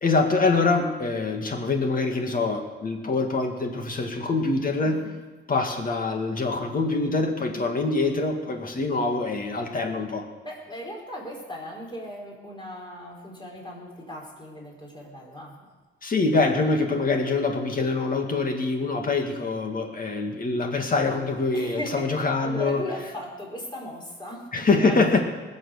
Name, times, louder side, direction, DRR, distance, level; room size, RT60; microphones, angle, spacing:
voice 1, 0.0-5.0 5.5-10.2 16.0-22.8 24.5-25.2, left 3 dB, 45° left, 3 dB, 2.2 m, -24 dB
voice 2, 10.4-15.7 21.5-25.2, left 1 dB, 20° left, -2 dB, 4.7 m, -37 dB
20.0 x 7.3 x 6.7 m, 1.3 s
cardioid pair, 95°, 20 cm